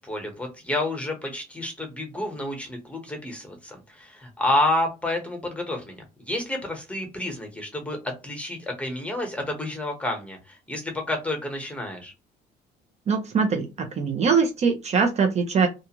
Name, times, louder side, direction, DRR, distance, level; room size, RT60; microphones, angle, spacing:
voice 1, 0.0-12.1, left 1 dB, 5° left, 3 dB, 1.0 m, -29 dB
voice 2, 13.1-15.7, right 5 dB, 40° right, 5 dB, 0.5 m, -22 dB
2.4 x 2.3 x 2.9 m, 0.27 s
cardioid pair, 110°, 17 cm